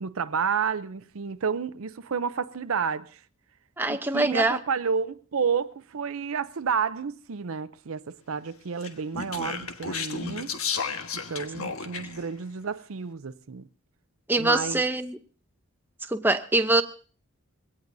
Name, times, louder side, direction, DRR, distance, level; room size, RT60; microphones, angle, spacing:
voice 1, 0.0-3.2 3.9-10.5 11.1-13.7 14.4-14.8, right 6 dB, 80° right, 0.6 m, -30 dB
voice 2, 3.8-4.6 14.3-15.2 16.1-16.8, right 2 dB, 10° right, 0.7 m, -23 dB
Speech, 8.8-12.3, left 5 dB, 85° left, 1.4 m, -33 dB
22.5 x 17.5 x 2.7 m
head